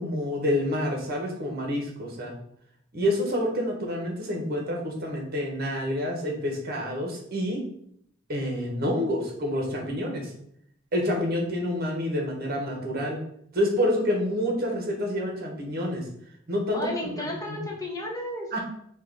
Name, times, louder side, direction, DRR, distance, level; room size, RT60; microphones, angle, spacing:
voice 1, 0.0-2.3 2.9-7.7 8.3-10.3 10.9-13.3 13.5-16.1 16.5-17.1 17.5-17.6 18.5-18.6, left 1 dB, 50° right, 1 dB, 1.1 m, -28 dB
voice 2, 16.7-18.6, left 1 dB, 20° left, -3 dB, 1.2 m, -33 dB
4.7 x 2.4 x 4.6 m, 0.70 s
head